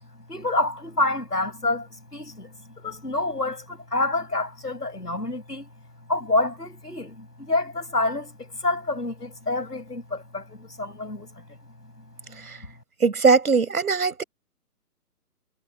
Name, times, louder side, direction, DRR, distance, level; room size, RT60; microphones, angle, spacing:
voice 1, 0.3-5.7 6.1-11.3 12.3-12.4, left 2 dB, 90° left, 7.8 m, -28 dB
voice 2, 13.0-14.2, right 5 dB, 70° right, 6.8 m, -20 dB
figure-of-eight pair, 135°, 46 cm